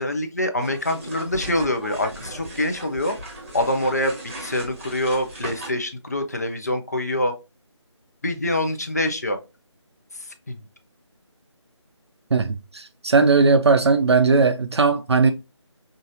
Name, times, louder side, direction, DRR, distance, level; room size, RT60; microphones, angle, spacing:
voice 1, 0.0-3.2 3.5-7.3 8.2-9.4 10.5-10.6, left 1 dB, 35° left, 0.4 m, -25 dB
sound 1, 0.6-5.7, right 2 dB, 30° right, 0.9 m, -37 dB
voice 2, 12.3-15.3, right 4 dB, 65° right, 0.4 m, -18 dB
3.9 x 2.5 x 2.4 m
figure-of-eight pair, 160°, 15 cm